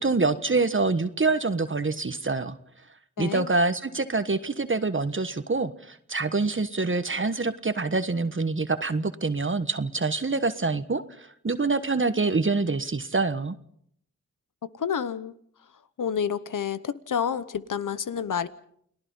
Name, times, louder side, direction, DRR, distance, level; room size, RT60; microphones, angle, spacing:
voice 1, 0.0-2.6 3.2-13.5, right 3 dB, 40° right, 1.4 m, -26 dB
voice 2, 3.2-3.5 14.7-15.3 16.0-18.5, left 7 dB, 85° left, 1.0 m, -29 dB
29.5 x 19.5 x 5.5 m
cardioid pair, 55°, 31 cm